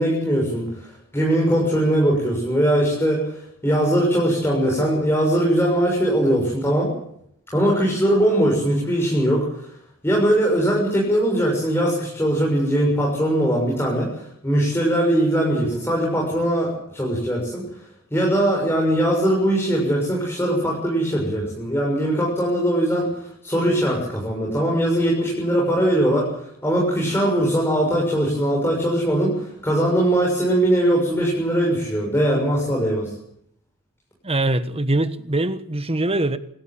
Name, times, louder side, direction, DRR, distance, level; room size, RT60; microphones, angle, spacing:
voice 1, 0.0-6.9 7.5-9.7 10.0-17.6 18.1-33.1, right 1 dB, 10° left, 6.6 m, -21 dB
voice 2, 34.2-36.4, right 2 dB, 25° right, 1.3 m, -22 dB
27.0 x 13.0 x 9.0 m
head